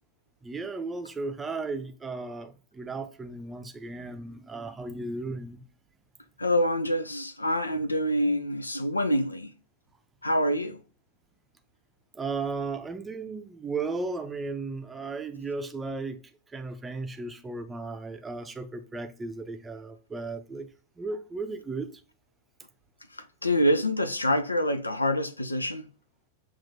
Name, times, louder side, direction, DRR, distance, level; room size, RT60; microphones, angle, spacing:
voice 1, 0.4-5.6 12.1-16.2 16.5-20.7 21.0-21.9, right 3 dB, 15° right, 0.6 m, -35 dB
voice 2, 6.4-9.5 10.2-10.8 23.4-25.9, equal, 80° left, 0.4 m, -26 dB
7.3 x 2.5 x 2.6 m
figure-of-eight pair, 90°, 0 cm